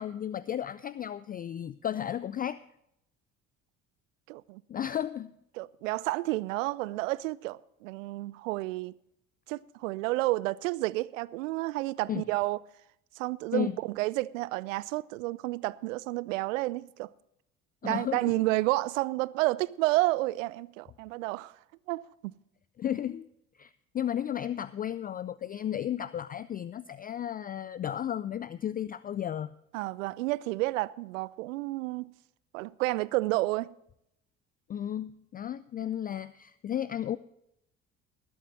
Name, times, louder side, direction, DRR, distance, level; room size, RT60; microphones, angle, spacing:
voice 1, 0.0-2.6 4.7-5.3 12.1-12.2 13.5-13.8 17.8-18.3 22.8-23.3 23.6-29.5 34.7-37.2, left 10 dB, 25° left, 0.4 m, -34 dB
voice 2, 4.3-4.6 5.6-9.0 9.5-12.6 13.2-17.1 17.8-21.5 21.9-22.3 29.7-32.1 32.5-33.7, right 20 dB, 70° right, 0.6 m, -30 dB
20.0 x 8.3 x 4.0 m
figure-of-eight pair, 55°, 40 cm